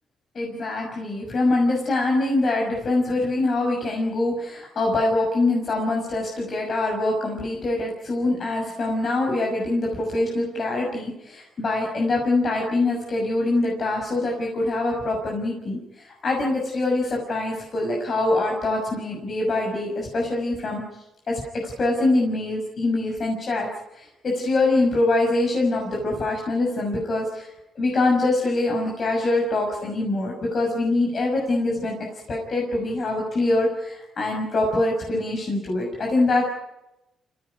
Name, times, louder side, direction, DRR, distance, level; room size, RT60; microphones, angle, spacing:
voice 1, 0.3-20.8 21.3-31.9 32.3-36.4, left 2 dB, 45° left, 0 dB, 6.3 m, -24 dB
27.0 x 16.5 x 9.6 m, 0.91 s
cardioid pair, 90°, 0 cm